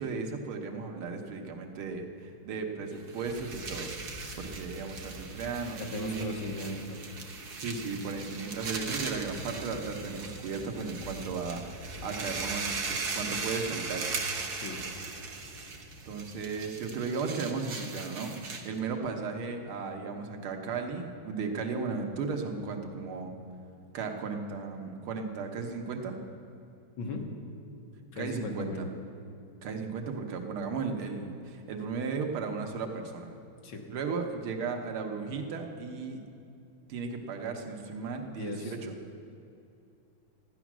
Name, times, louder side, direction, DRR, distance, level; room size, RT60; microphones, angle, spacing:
voice 1, 0.0-3.9 4.4-6.3 7.6-14.1 16.1-23.3 23.9-26.2 28.2-28.9 29.6-33.3 33.9-36.2 36.9-38.9, right 4 dB, 85° right, 3 dB, 2.0 m, -35 dB
sound 1, 3.0-18.8, right 4 dB, 55° right, 1.5 m, -39 dB
sound 2, 3.2-16.6, left 1 dB, 25° left, 1.9 m, -48 dB
voice 2, 5.8-7.1 14.5-14.8 27.0-27.3 28.1-28.9 33.6-33.8 38.3-38.8, left 2 dB, 75° left, 2 dB, 2.1 m, -37 dB
14.0 x 10.0 x 6.1 m, 2.6 s
omnidirectional pair, 2.3 m